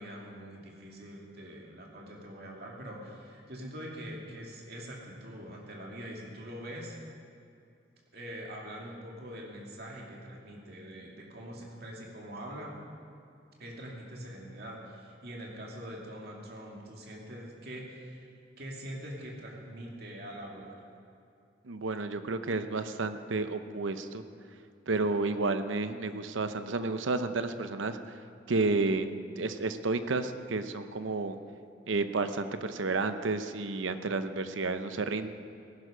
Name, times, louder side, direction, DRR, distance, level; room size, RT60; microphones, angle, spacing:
voice 1, 0.0-7.0 8.1-12.8 13.6-18.3 18.6-20.9, equal, 55° right, -2 dB, 2.5 m, -43 dB
voice 2, 21.6-24.2 24.9-28.2 28.5-29.1 29.4-31.4 31.9-35.3, right 3 dB, 80° right, 10 dB, 0.7 m, -31 dB
17.5 x 11.0 x 5.0 m, 2.5 s
head